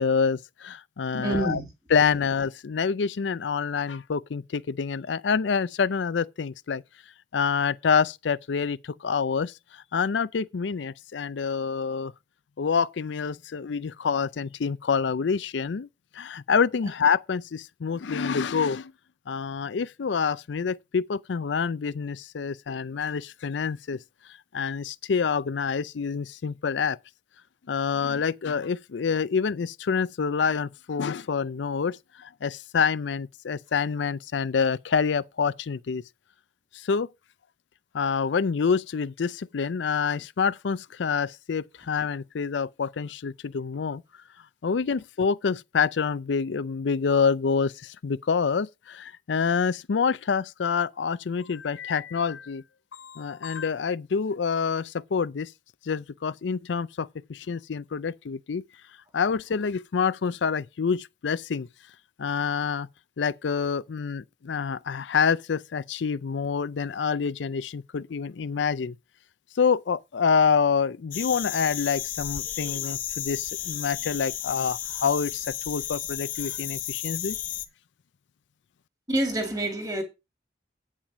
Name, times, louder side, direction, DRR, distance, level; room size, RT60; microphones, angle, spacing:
voice 1, 0.0-1.6 1.9-6.8 7.3-12.1 12.6-15.9 16.1-18.9 19.3-24.0 24.5-27.0 27.7-36.0 36.7-37.1 37.9-44.0 44.6-52.6 52.9-55.5 55.8-58.6 59.1-61.7 62.2-62.9 63.2-69.0 69.6-77.4, left 6 dB, 80° left, 0.5 m, -27 dB
voice 2, 1.1-1.7 79.1-80.0, right 1 dB, 20° right, 2.2 m, -27 dB
sound 1, 71.1-77.6, left 12 dB, 45° left, 0.9 m, -33 dB
8.9 x 7.3 x 4.9 m
head